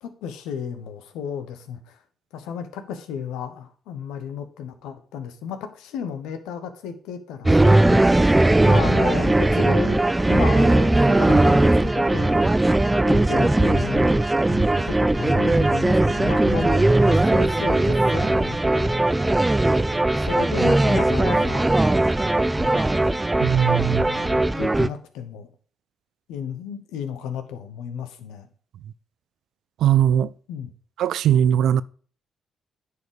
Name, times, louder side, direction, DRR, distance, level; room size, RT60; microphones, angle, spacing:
voice 1, 0.0-2.0 2.3-12.7 13.0-14.1 14.9-19.0 19.8-21.8 24.0-25.5 26.3-28.5 30.5-30.7, left 7 dB, 75° left, 1.1 m, -34 dB
sound 1, 7.5-24.9, right 2 dB, 15° right, 0.7 m, -19 dB
voice 2, 23.4-24.0 29.8-30.3 31.0-31.8, right 10 dB, 70° right, 0.4 m, -20 dB
9.6 x 4.9 x 4.8 m
hypercardioid pair, 45°, 0 cm